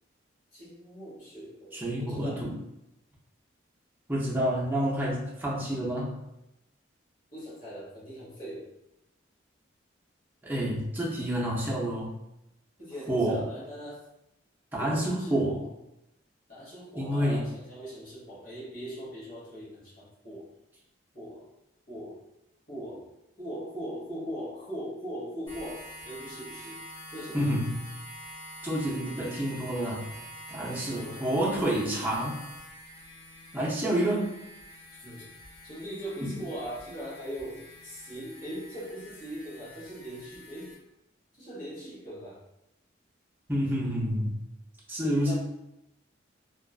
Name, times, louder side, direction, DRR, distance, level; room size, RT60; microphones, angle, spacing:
voice 1, 0.5-2.5 7.3-8.7 12.8-14.1 14.8-15.7 16.5-20.5 21.1-21.5 21.9-22.2 22.7-23.1 23.4-26.8 27.1-27.5 30.7-31.4 35.0-35.3 35.6-40.7 41.4-42.4 45.0-45.3, equal, 45° left, -8 dB, 1.0 m, -40 dB
voice 2, 1.7-2.5 4.1-6.2 10.4-12.1 13.1-13.4 14.7-15.6 17.0-17.4 27.3-27.8 28.6-30.1 30.5-32.4 33.5-34.3 36.2-36.3 43.5-44.3 44.9-45.3, right 1 dB, 10° right, -5 dB, 0.4 m, -28 dB
sound 1, 25.5-40.8, equal, 25° left, 1.1 m, -47 dB
2.4 x 2.2 x 2.3 m, 0.87 s
head